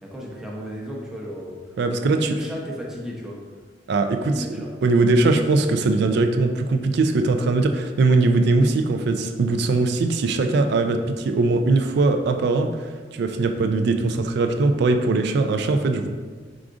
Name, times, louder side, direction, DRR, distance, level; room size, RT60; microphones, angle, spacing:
voice 1, 0.0-3.4 4.0-4.7 5.3-5.4, equal, 5° right, -4 dB, 0.7 m, -34 dB
voice 2, 1.8-2.3 3.9-12.9 13.1-16.1, right 3 dB, 65° right, 6 dB, 0.3 m, -21 dB
4.8 x 3.7 x 2.4 m, 1.5 s
head